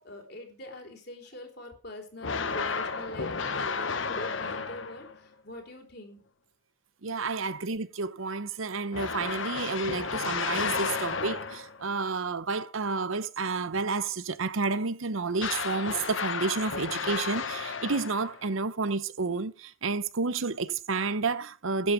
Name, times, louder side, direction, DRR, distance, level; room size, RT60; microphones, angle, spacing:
voice 1, 0.0-6.2, left 1 dB, 50° left, 4.0 m, -43 dB
sound 1, 2.2-5.2 8.9-11.8 15.4-18.5, left 5 dB, 65° left, 1.2 m, -32 dB
voice 2, 7.0-21.9, right 4 dB, 75° right, 0.8 m, -30 dB
11.0 x 8.1 x 8.4 m
head